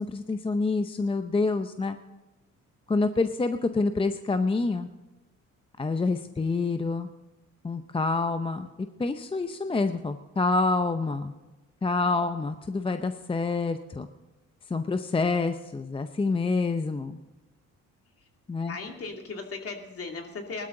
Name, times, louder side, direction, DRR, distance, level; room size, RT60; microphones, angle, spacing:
voice 1, 0.0-2.0 2.9-4.9 5.8-7.1 7.6-8.7 9.0-11.3 11.8-14.1 14.7-17.1 18.5-18.8, left 3 dB, 20° left, 9 dB, 0.6 m, -27 dB
voice 2, 18.6-20.7, left 4 dB, 50° left, 3 dB, 2.5 m, -37 dB
19.0 x 12.5 x 3.8 m, 1.1 s
cardioid pair, 90°, 30 cm